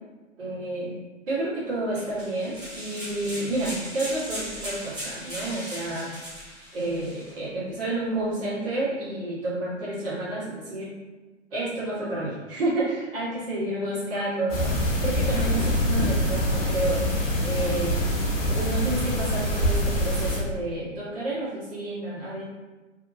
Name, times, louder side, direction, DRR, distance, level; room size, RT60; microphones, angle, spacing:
voice 1, 0.4-0.9 1.2-6.1 6.7-10.9 11.5-17.1 17.4-18.0 18.5-22.4, right 2 dB, 45° right, -9 dB, 1.3 m, -30 dB
sound 1, 2.0-7.3, equal, 10° right, 0.8 m, -38 dB
sound 2, 14.5-20.4, equal, 30° left, 0.6 m, -25 dB
2.7 x 2.2 x 2.5 m, 1.2 s
figure-of-eight pair, 120°, 39 cm